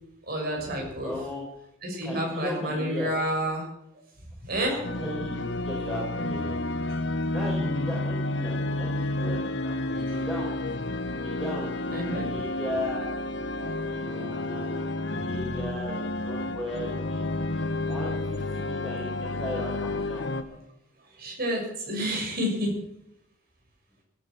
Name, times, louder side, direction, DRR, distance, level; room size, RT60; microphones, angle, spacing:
voice 1, 0.3-1.1 1.8-3.6 4.4-4.8 6.8-6.9 10.1-10.2 11.2-11.3 11.9-12.4 13.6-13.8 17.5-17.7 20.5-20.6 21.2-22.7, equal, 50° right, 0 dB, 6.7 m, -30 dB
voice 2, 1.0-1.4 2.0-3.1 4.7-6.6 7.3-13.1 13.9-20.3, left 1 dB, ahead, -5 dB, 4.9 m, -37 dB
sound 1, 4.8-20.4, left 2 dB, 60° left, 1.1 m, -30 dB
17.0 x 9.8 x 7.9 m, 0.79 s
head